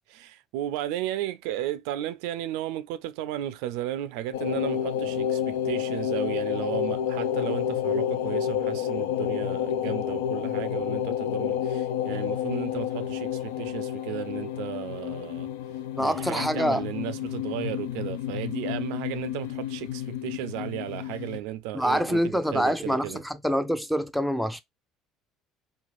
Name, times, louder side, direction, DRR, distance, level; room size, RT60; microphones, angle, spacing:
voice 1, 0.1-15.5 16.0-23.2, right 13 dB, 80° right, 0.3 m, -34 dB
sound 1, 4.3-21.4, left 9 dB, 85° left, 0.3 m, -30 dB
voice 2, 16.0-16.8 21.7-24.6, equal, ahead, 0.5 m, -26 dB
3.1 x 2.4 x 2.4 m
supercardioid pair, 80°, 0 cm